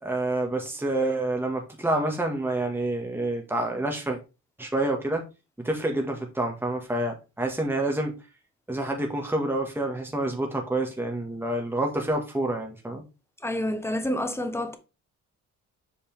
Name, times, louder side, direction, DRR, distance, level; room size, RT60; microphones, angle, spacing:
voice 1, 0.0-4.2 4.6-5.2 5.6-8.1 8.7-13.0, right 1 dB, 5° right, 1.9 m, -28 dB
voice 2, 13.4-14.8, left 1 dB, 10° left, 1.2 m, -28 dB
7.7 x 5.1 x 3.6 m
cardioid pair, 90°, 30 cm